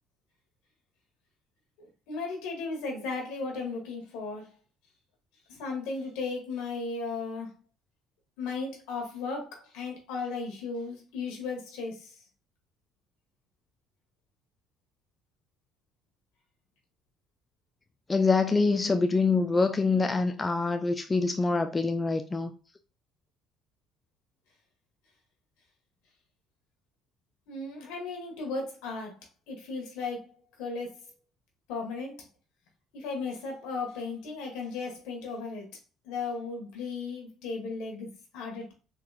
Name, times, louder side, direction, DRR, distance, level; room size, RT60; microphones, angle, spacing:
voice 1, 1.8-4.5 5.5-7.5 8.4-12.2 27.5-29.2 29.5-30.3 30.6-31.0 31.7-32.2 32.9-35.7 36.0-38.7, left 4 dB, 80° left, 1.2 m, -35 dB
voice 2, 18.1-22.5, left 3 dB, 25° left, 0.3 m, -25 dB
3.8 x 2.8 x 2.3 m
supercardioid pair, 70°, 0 cm